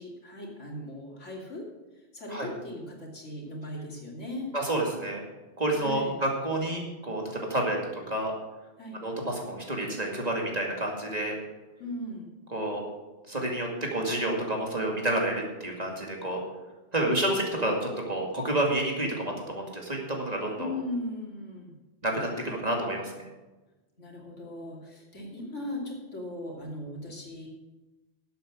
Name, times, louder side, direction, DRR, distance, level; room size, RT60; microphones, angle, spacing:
voice 1, 0.0-1.7 2.1-4.5 5.7-6.2 8.8-9.0 11.8-12.3 17.0-17.3 20.6-21.7 24.0-27.5, left 1 dB, 90° left, -2 dB, 3.2 m, -38 dB
voice 2, 4.5-5.2 5.6-8.3 9.0-11.3 12.5-12.8 13.3-16.4 16.9-20.7 22.0-23.1, right 1 dB, 35° right, 0 dB, 2.4 m, -29 dB
12.0 x 8.2 x 6.3 m, 1.1 s
omnidirectional pair, 1.2 m